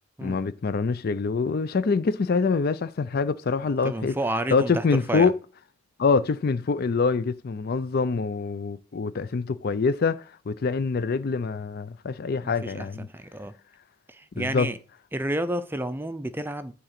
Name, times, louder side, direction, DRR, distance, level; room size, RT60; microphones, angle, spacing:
voice 1, 0.2-4.2 4.5-5.3 6.0-13.1 14.4-14.7, left 4 dB, 45° left, 0.4 m, -25 dB
voice 2, 3.6-5.3 12.4-13.6 14.1-14.8 15.1-16.7, right 1 dB, 10° right, 0.5 m, -31 dB
9.3 x 3.7 x 5.9 m
head